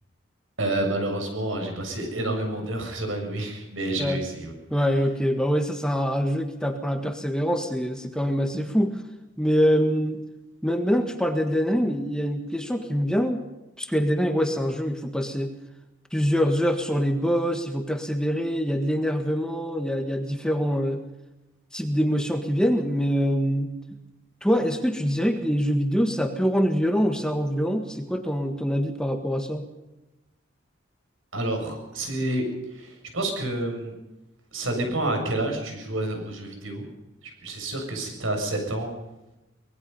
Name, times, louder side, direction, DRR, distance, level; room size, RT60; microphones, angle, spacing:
voice 1, 0.6-4.5 31.3-32.4 32.7-33.9 34.5-36.8 37.2-38.9, right 1 dB, 85° right, 4 dB, 7.1 m, -29 dB
voice 2, 4.7-9.0 9.4-10.2 10.6-13.4 13.8-15.5 16.1-21.0 21.7-23.7 24.4-29.6, equal, 5° left, 5 dB, 1.6 m, -24 dB
25.0 x 20.5 x 5.6 m, 0.98 s
head